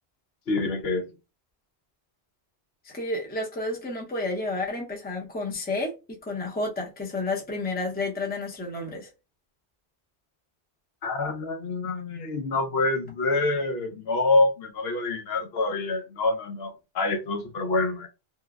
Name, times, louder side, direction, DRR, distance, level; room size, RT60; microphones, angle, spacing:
voice 1, 0.5-1.1 11.0-18.1, left 2 dB, 70° left, 0.8 m, -26 dB
voice 2, 2.8-9.1, left 2 dB, 10° left, 0.6 m, -31 dB
3.1 x 2.1 x 2.3 m
omnidirectional pair, 1.1 m